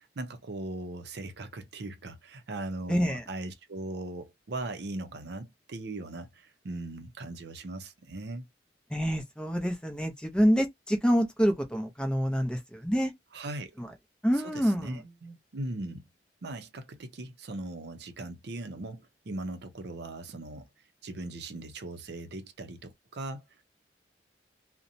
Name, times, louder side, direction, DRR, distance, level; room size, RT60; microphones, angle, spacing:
voice 1, 0.0-8.4 13.3-13.7 14.3-16.0 16.4-20.7 21.0-23.4, right 2 dB, 65° right, 0.6 m, -39 dB
voice 2, 2.9-3.2 8.9-13.1 13.8-13.9 14.2-15.0, equal, 5° left, 0.5 m, -27 dB
2.7 x 2.1 x 2.6 m
head